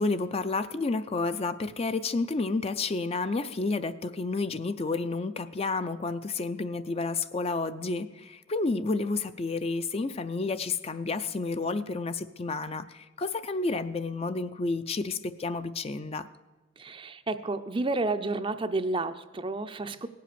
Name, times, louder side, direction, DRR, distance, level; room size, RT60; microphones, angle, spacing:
voice 1, 0.0-16.3, left 3 dB, 30° left, 11 dB, 0.4 m, -30 dB
voice 2, 16.8-20.1, right 2 dB, 25° right, 10 dB, 0.5 m, -31 dB
18.0 x 7.7 x 6.8 m, 1.1 s
head